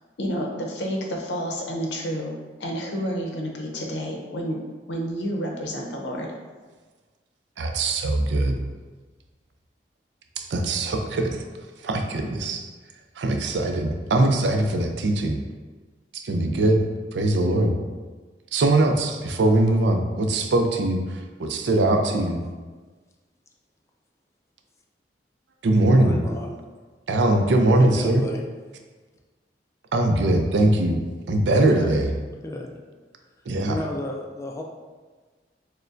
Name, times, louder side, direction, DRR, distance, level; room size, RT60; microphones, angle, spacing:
voice 1, 0.2-4.6 4.9-6.3, equal, 75° left, 0 dB, 0.7 m, -30 dB
voice 2, 7.6-8.6 10.4-11.4 11.8-12.6 13.2-15.4 16.1-16.8 17.1-17.7 18.5-21.0 21.4-22.4 25.6-26.2 27.1-28.2 29.9-31.0 31.3-32.1 33.5-33.8, right 2 dB, 80° right, 4 dB, 0.5 m, -21 dB
voice 3, 25.8-26.6 27.8-28.4 31.7-31.9 32.4-32.7 33.7-34.6, left 1 dB, 15° left, 0 dB, 0.4 m, -32 dB
6.4 x 2.2 x 2.5 m, 1.4 s
head